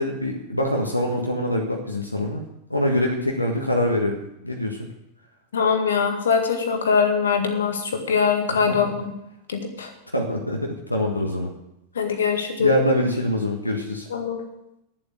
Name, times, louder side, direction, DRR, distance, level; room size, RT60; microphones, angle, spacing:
voice 1, 0.0-2.4 2.7-4.9 8.6-8.9 10.1-11.5 12.6-14.1, left 1 dB, 85° left, 1 dB, 1.5 m, -24 dB
voice 2, 5.5-9.1 9.5-9.9 12.0-12.8 14.1-14.4, left 6 dB, 65° left, 6 dB, 1.8 m, -22 dB
11.5 x 7.7 x 8.1 m, 0.84 s
figure-of-eight pair, 90°, 0 cm